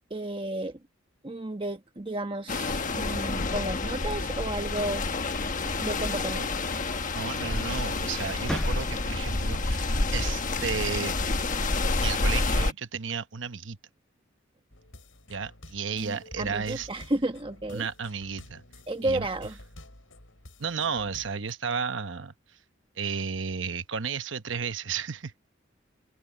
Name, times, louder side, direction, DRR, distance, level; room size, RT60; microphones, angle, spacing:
voice 1, 0.1-0.8 1.2-5.3 5.6-6.5 16.0-17.9 18.9-19.5, right 1 dB, 25° right, 1.2 m, -32 dB
sound 1, 2.5-12.7, left 3 dB, 40° left, 1.3 m, -28 dB
voice 2, 7.1-11.2 12.0-13.8 15.3-16.9 17.7-18.6 19.0-19.3 20.6-22.3 23.0-25.3, right 6 dB, 70° right, 1.0 m, -33 dB
sound 2, 8.2-9.3, equal, 5° left, 0.7 m, -40 dB
sound 3, 14.7-21.5, left 1 dB, 90° left, 7.6 m, -49 dB
open air
head